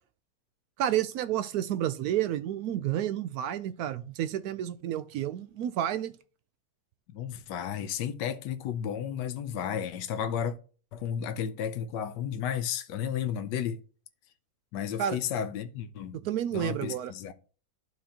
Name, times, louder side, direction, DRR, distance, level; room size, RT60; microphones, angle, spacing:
voice 1, 0.8-6.1 15.0-15.2 16.2-17.1, right 11 dB, 70° right, 0.9 m, -30 dB
voice 2, 7.1-10.6 10.9-13.8 14.7-16.2 16.5-17.3, left 8 dB, 80° left, 1.3 m, -33 dB
12.5 x 4.2 x 2.8 m
omnidirectional pair, 1.9 m